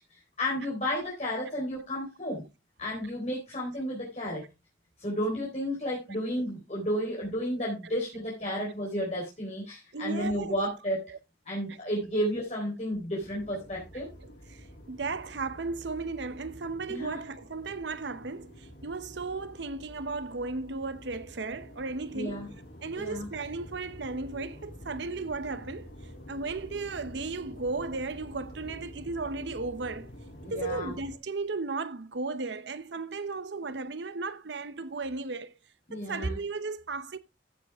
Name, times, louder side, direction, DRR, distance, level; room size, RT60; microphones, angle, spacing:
voice 1, 0.1-2.4 2.8-4.4 5.0-11.1 11.5-14.1 16.9-17.2 22.1-22.5 23.0-23.2 30.5-30.9 35.9-36.4, equal, 40° left, 3.9 m, -32 dB
voice 2, 9.9-10.6 11.1-11.2 11.7-11.8 13.9-22.5 22.8-25.9 26.3-30.1 30.4-35.5 35.9-37.2, right 3 dB, 70° right, 0.8 m, -35 dB
sound 1, 13.2-31.2, equal, 70° left, 6.2 m, -48 dB
14.5 x 7.4 x 3.5 m
head